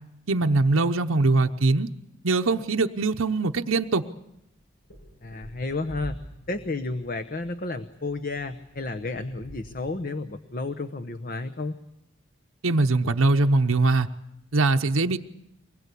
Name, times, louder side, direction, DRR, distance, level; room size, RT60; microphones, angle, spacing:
voice 1, 0.3-1.9 2.2-4.0 12.6-14.1 14.5-15.2, right 3 dB, 80° right, 5 dB, 0.9 m, -22 dB
sound 1, 3.8-3.9 4.4-10.0, right 1 dB, 65° left, 6.6 m, -46 dB
voice 2, 5.2-6.2 6.5-11.8, left 3 dB, 45° left, 8 dB, 0.9 m, -32 dB
24.5 x 21.0 x 8.3 m, 0.86 s
head